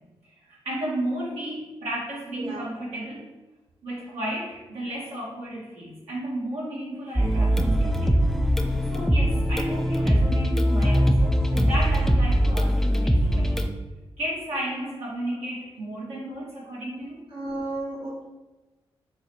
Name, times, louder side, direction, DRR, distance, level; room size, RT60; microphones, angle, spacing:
voice 1, 0.5-3.2 3.8-8.3 8.5-13.5 14.2-17.2, right 1 dB, 80° right, -7 dB, 1.5 m, -33 dB
voice 2, 2.3-2.7 14.8-14.9 17.3-18.2, right 2 dB, 55° right, -5 dB, 0.8 m, -33 dB
sound 1, 7.2-13.7, equal, 5° left, 0.4 m, -21 dB
3.8 x 2.0 x 4.3 m, 1.1 s
supercardioid pair, 45°, 11 cm